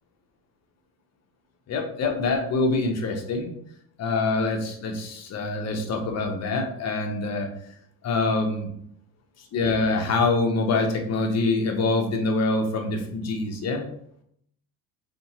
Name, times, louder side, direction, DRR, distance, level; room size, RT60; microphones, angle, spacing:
voice 1, 1.7-3.5 4.0-7.5 8.0-8.7 9.5-13.9, left 3 dB, 35° left, 3 dB, 0.7 m, -25 dB
2.6 x 2.5 x 2.9 m, 0.69 s
supercardioid pair, 80°, 45 cm